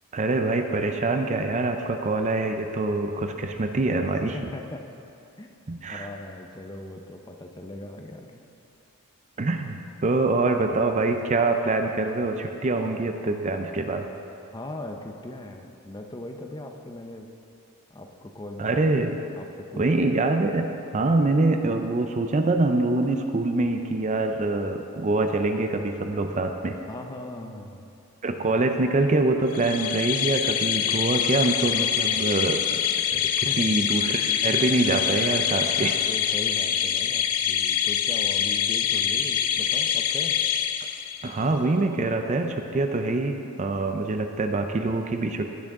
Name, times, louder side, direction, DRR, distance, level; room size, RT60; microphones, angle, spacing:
voice 1, 0.1-4.4 5.7-6.1 9.4-14.1 18.6-19.2 19.8-26.8 28.2-32.8 33.1-36.0 41.2-45.5, right 2 dB, 30° right, 6 dB, 0.4 m, -25 dB
voice 2, 4.3-4.8 5.4-5.5 5.9-8.4 14.4-17.3 17.9-18.8 19.4-20.1 26.9-27.9 33.4-33.8 35.8-40.4, left 1 dB, 20° left, 4 dB, 0.5 m, -39 dB
sound 1, 29.5-41.4, left 9 dB, 75° left, 0.5 m, -25 dB
16.5 x 6.1 x 3.6 m, 2.6 s
head